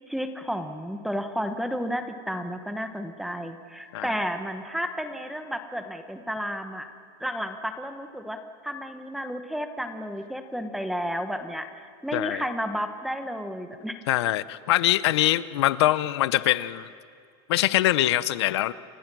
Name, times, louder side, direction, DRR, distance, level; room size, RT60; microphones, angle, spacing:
voice 1, 0.1-6.9 7.2-8.4 8.6-14.0, equal, ahead, 7 dB, 1.1 m, -32 dB
voice 2, 12.1-12.4 14.1-16.9 17.5-18.7, left 15 dB, 75° left, 16 dB, 0.8 m, -23 dB
30.0 x 24.5 x 6.2 m, 2.4 s
supercardioid pair, 175°, 14 cm